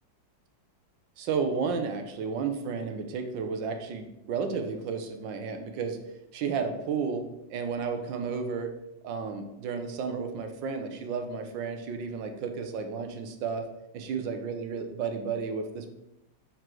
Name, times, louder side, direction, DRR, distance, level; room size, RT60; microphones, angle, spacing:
voice 1, 1.2-6.0 6.3-8.7 9.0-13.6 13.9-15.9, right 5 dB, 80° right, 6 dB, 1.5 m, -32 dB
5.0 x 4.7 x 6.0 m, 0.87 s
omnidirectional pair, 2.0 m